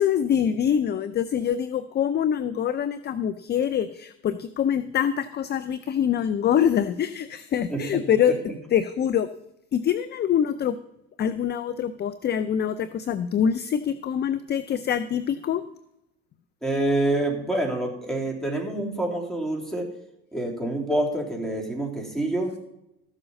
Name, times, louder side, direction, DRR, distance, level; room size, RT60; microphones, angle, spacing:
voice 1, 0.0-8.3 8.7-9.3 9.7-10.8 11.2-15.6, left 9 dB, 30° left, 13 dB, 0.5 m, -24 dB
voice 2, 7.7-8.0 16.6-19.8 20.3-22.6, right 1 dB, ahead, -1 dB, 3.2 m, -27 dB
14.0 x 7.1 x 5.3 m, 0.87 s
supercardioid pair, 100°, 32 cm